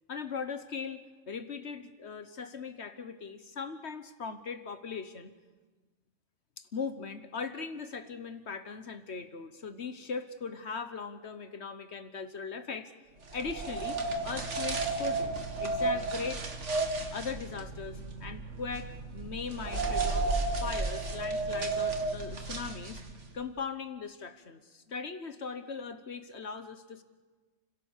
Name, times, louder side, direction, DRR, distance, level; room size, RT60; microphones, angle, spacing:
voice 1, 0.1-5.3 6.6-12.9 13.3-15.3 15.6-16.4 17.1-20.3 20.6-23.0 23.3-27.0, left 5 dB, 60° left, 10 dB, 1.4 m, -39 dB
sound 1, 13.3-23.3, right 3 dB, 70° right, 2.3 m, -33 dB
30.0 x 16.5 x 7.3 m, 1.3 s
omnidirectional pair, 1.3 m